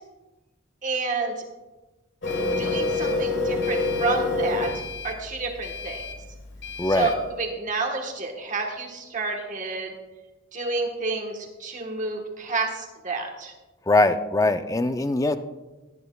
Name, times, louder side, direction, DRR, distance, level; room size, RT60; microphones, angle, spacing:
voice 1, 0.8-1.4 2.6-4.7 5.0-6.0 6.8-9.9 10.5-13.5, right 3 dB, 40° right, 1 dB, 1.3 m, -29 dB
Printer, 2.2-7.2, left 3 dB, 65° left, 1.5 m, -28 dB
voice 2, 6.8-7.1 13.9-15.4, left 2 dB, 15° left, 9 dB, 0.4 m, -21 dB
17.0 x 10.5 x 2.3 m, 1.1 s
head